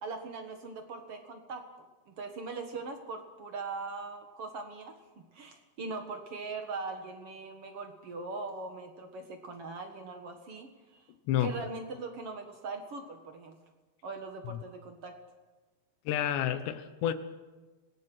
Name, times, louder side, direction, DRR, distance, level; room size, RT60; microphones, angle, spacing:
voice 1, 0.0-1.7 2.1-11.0 11.4-13.6 14.0-15.2, right 3 dB, 60° right, 5 dB, 1.6 m, -41 dB
voice 2, 16.1-17.1, left 11 dB, 85° left, 11 dB, 3.4 m, -30 dB
26.0 x 18.0 x 6.3 m, 1.3 s
omnidirectional pair, 4.9 m